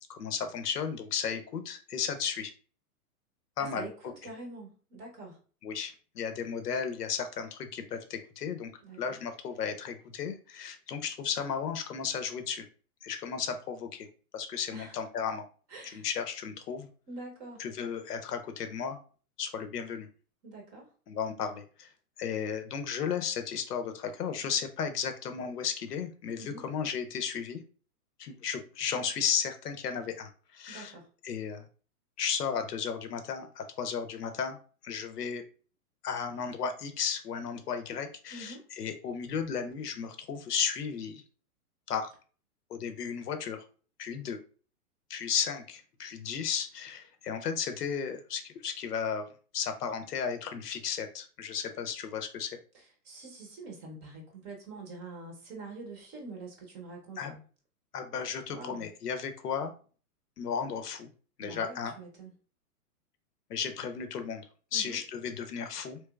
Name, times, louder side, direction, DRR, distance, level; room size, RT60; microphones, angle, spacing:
voice 1, 0.1-2.5 3.6-3.9 5.6-8.7 9.0-12.6 13.0-14.1 14.3-15.4 15.9-16.9 17.6-19.0 19.4-20.1 21.1-21.9 22.2-27.6 28.2-30.9 31.2-31.7 32.2-34.6 34.8-35.4 36.0-41.2 41.9-42.1 42.7-43.6 44.0-44.4 45.1-49.3 49.5-52.6 57.2-57.3 57.9-59.7 60.4-61.1 61.4-61.9 63.5-64.4 64.7-66.0, left 7 dB, 85° left, 7 dB, 0.7 m, -34 dB
voice 2, 3.6-5.4 8.8-9.2 14.7-15.0 15.7-16.1 17.1-17.7 20.4-20.9 26.4-26.7 30.7-31.1 38.3-38.6 52.7-57.4 58.5-58.9 61.4-62.3 64.7-65.0, right 3 dB, 20° right, 1 dB, 0.6 m, -45 dB
3.3 x 3.0 x 2.2 m, 0.39 s
hypercardioid pair, 135°, 46 cm